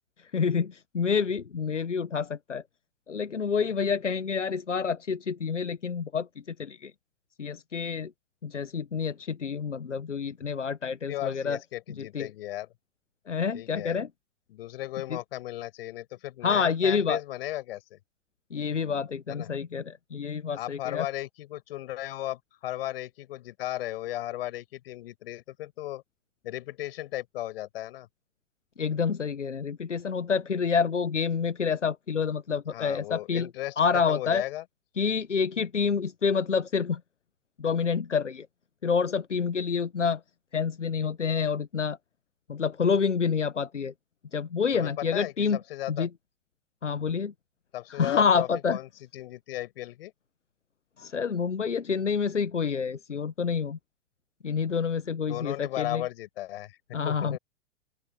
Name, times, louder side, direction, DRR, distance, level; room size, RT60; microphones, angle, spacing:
voice 1, 0.2-2.6 3.1-6.9 7.4-8.1 8.4-11.6 12.0-12.3 13.3-14.1 15.1-15.2 16.4-17.2 18.5-21.0 28.8-33.5 33.8-34.4 35.0-37.0 37.6-38.5 38.8-40.2 40.5-42.0 42.5-43.9 44.3-45.6 45.9-46.1 46.8-47.3 47.9-48.8 51.0-53.8 54.4-56.0 56.9-57.4, left 6 dB, 85° left, 1.1 m, -28 dB
voice 2, 11.1-12.7 13.5-14.0 14.5-18.0 19.3-19.5 20.5-26.0 26.4-28.1 32.7-33.8 34.1-34.6 44.7-46.1 47.7-50.1 55.3-57.4, left 15 dB, 55° left, 7.2 m, -36 dB
open air
figure-of-eight pair, 105°, 35 cm